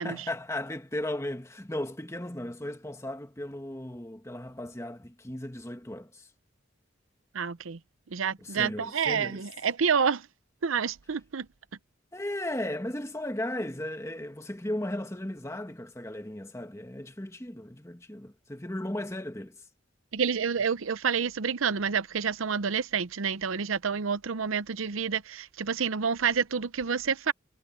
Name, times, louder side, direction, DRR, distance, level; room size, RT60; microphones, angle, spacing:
voice 1, 0.0-6.3 8.4-9.5 12.1-19.7, left 1 dB, 15° left, 1.5 m, -36 dB
voice 2, 7.3-7.8 8.1-10.3 10.6-11.5 20.1-27.3, right 6 dB, 90° right, 0.7 m, -28 dB
head